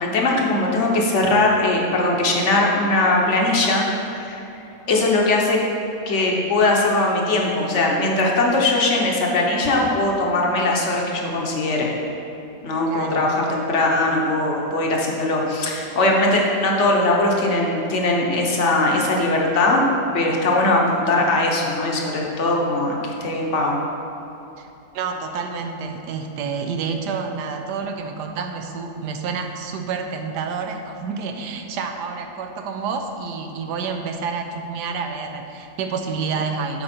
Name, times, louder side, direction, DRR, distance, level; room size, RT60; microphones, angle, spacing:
voice 1, 0.0-3.8 4.1-4.4 4.9-5.6 6.0-11.9 12.6-19.8 20.1-23.8, left 2 dB, 50° left, -1 dB, 1.1 m, -20 dB
voice 2, 12.9-13.3 24.6-24.7 24.9-36.8, right 5 dB, 85° right, 5 dB, 1.2 m, -29 dB
8.7 x 4.9 x 4.3 m, 2.9 s
omnidirectional pair, 1.8 m